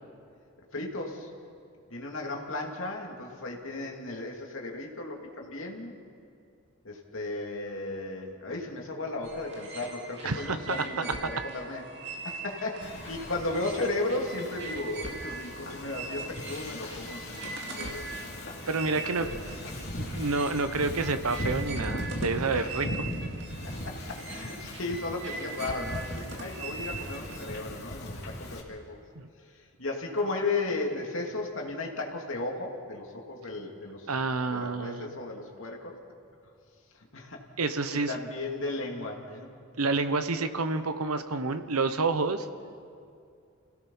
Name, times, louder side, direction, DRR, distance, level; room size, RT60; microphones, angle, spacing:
voice 1, 0.7-1.3 1.9-5.9 6.8-19.3 19.6-19.8 22.5-22.9 23.6-29.0 29.5-34.1 34.5-36.0 36.9-37.4 37.9-39.5, left 2 dB, 65° left, 0 dB, 2.6 m, -35 dB
sound 1, 9.2-27.6, right 3 dB, 50° right, 2.4 m, -42 dB
voice 2, 10.2-11.1 18.7-19.3 20.0-22.9 29.1-29.3 34.1-35.1 37.6-38.1 39.8-42.5, right 3 dB, 90° right, 10 dB, 1.0 m, -29 dB
Wind / Ocean, 12.8-28.6, left 1 dB, 50° left, 2.9 m, -39 dB
28.0 x 17.0 x 5.6 m, 2.4 s
head